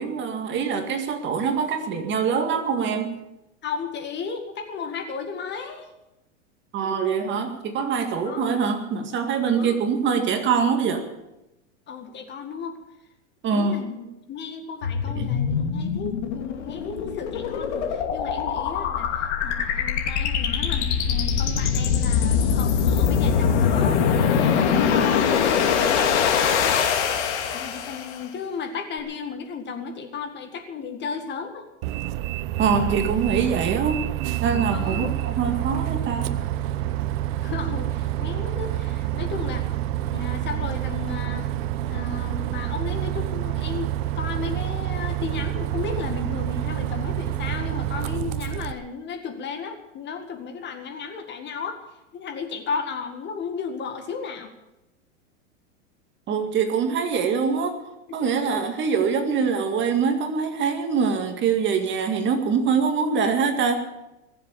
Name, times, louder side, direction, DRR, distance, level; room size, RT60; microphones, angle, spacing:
voice 1, 0.0-3.2 6.7-11.1 13.4-13.8 15.1-15.3 32.6-34.1 34.4-36.4 56.3-57.8 58.1-63.8, right 6 dB, 30° right, 6 dB, 2.0 m, -24 dB
voice 2, 3.6-5.9 8.2-8.6 9.4-9.8 11.9-12.8 13.5-25.6 25.9-26.9 27.5-31.7 34.7-35.1 37.4-39.7 40.0-41.5 41.9-51.8 52.1-54.5 58.1-58.7, left 5 dB, 30° left, 6 dB, 1.9 m, -34 dB
sound 1, 14.8-28.2, left 7 dB, 65° left, 2.6 m, -23 dB
Bus, 31.8-48.7, right 13 dB, 50° right, 1.0 m, -28 dB
21.5 x 7.7 x 8.6 m, 0.93 s
supercardioid pair, 135°, 38 cm